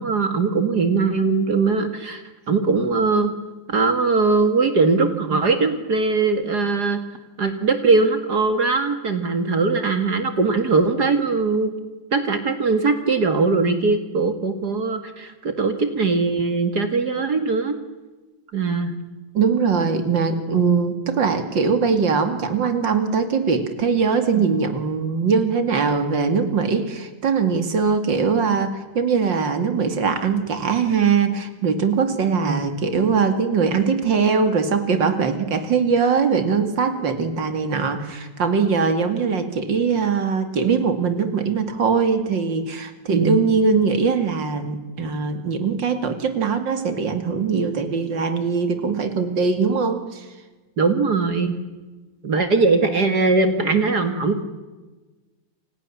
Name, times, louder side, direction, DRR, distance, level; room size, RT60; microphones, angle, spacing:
voice 1, 0.0-3.3 3.7-7.0 7.4-11.7 12.1-17.8 18.5-18.9 24.3-24.5 32.5-32.6 43.1-43.5 50.8-51.5 52.2-54.4, right 4 dB, 60° right, 8 dB, 2.5 m, -20 dB
voice 2, 19.3-50.2, right 5 dB, 75° right, 8 dB, 3.1 m, -21 dB
29.5 x 27.0 x 7.3 m, 1.2 s
omnidirectional pair, 2.0 m